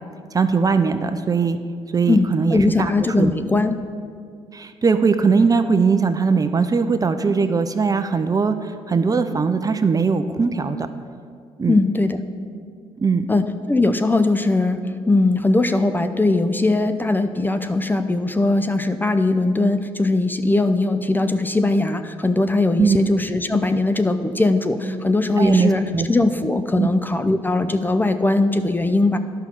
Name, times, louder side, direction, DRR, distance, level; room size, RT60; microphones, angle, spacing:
voice 1, 0.3-1.6 1.9-2.9 3.2-3.3 4.5-10.8 11.6-11.8 13.0-13.3 22.8-23.0 25.4-26.1 26.7-26.9, right 5 dB, 30° right, 9 dB, 0.6 m, -20 dB
voice 2, 2.1-3.7 11.7-12.2 13.3-29.2, left 2 dB, 15° left, 9 dB, 0.6 m, -20 dB
10.5 x 5.6 x 6.0 m, 2.2 s
supercardioid pair, 65°, 12 cm